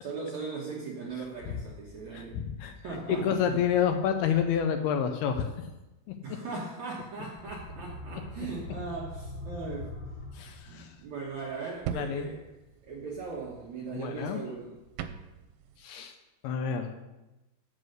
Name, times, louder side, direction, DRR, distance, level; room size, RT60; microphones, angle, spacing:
voice 1, 0.0-2.4 2.8-3.6 6.2-9.9 10.7-12.4 12.8-14.7, right 4 dB, 70° right, -3 dB, 1.7 m, -38 dB
voice 2, 2.1-5.5 10.3-11.0 11.9-12.3 13.9-14.4 15.8-16.2 16.4-16.9, left 8 dB, 80° left, 6 dB, 2.4 m, -29 dB
sound 1, 7.4-11.0, left 1 dB, 35° left, 1.8 m, -42 dB
sound 2, 11.0-15.9, right 8 dB, 90° right, 2.8 m, -43 dB
7.9 x 7.6 x 6.4 m, 1.0 s
omnidirectional pair, 4.9 m